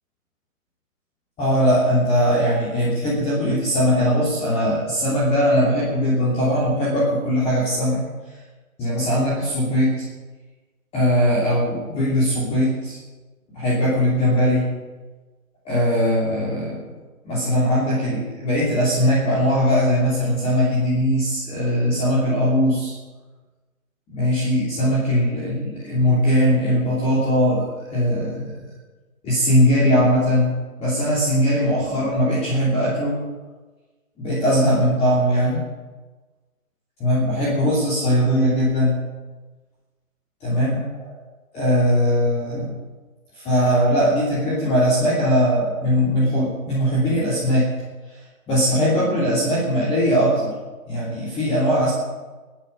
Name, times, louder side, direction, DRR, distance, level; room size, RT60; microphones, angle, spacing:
voice 1, 1.4-8.0 8.8-10.0 10.9-13.0 13.5-14.7 15.6-16.8 17.2-22.9 24.1-28.5 29.2-33.3 34.2-35.6 37.0-39.0 40.4-41.2 41.5-42.7 43.3-47.7 48.1-48.2 48.5-50.6 50.9-51.9, equal, 15° left, -6 dB, 2.9 m, -20 dB
22.5 x 9.1 x 5.5 m, 1.3 s
hypercardioid pair, 150°, 43 cm